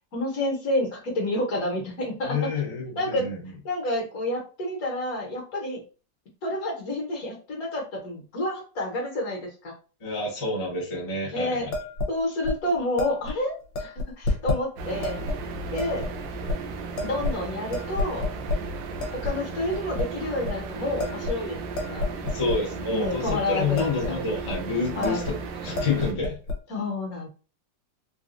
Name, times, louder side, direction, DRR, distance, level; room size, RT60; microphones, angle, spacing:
voice 1, 0.1-2.4 2.9-3.3 3.6-5.8 6.4-9.7 11.3-11.7 12.1-15.2 15.7-16.1 17.0-18.3 19.1-22.1 22.9-24.2 25.0-25.3 26.7-27.3, left 1 dB, 55° left, -1 dB, 1.4 m, -29 dB
voice 2, 2.2-3.5 10.0-11.7 22.2-25.4 25.6-26.4, left 3 dB, 25° left, -3 dB, 0.7 m, -28 dB
sound 1, 11.7-12.1 12.4-12.6 13.0-13.3 13.7-14.6 15.0-15.4 15.8-16.1 16.5-16.6 17.0-17.4 17.7-18.6 19.0-19.4 19.7-20.1 20.4-20.6 21.0-22.6 23.0-23.3 23.6-24.1 24.4-24.6 25.0-25.4 25.6-26.6, left 2 dB, 85° left, 1.5 m, -30 dB
sound 2, 14.8-26.1, right 4 dB, 75° right, 1.1 m, -35 dB
3.9 x 2.3 x 2.5 m, 0.35 s
omnidirectional pair, 2.0 m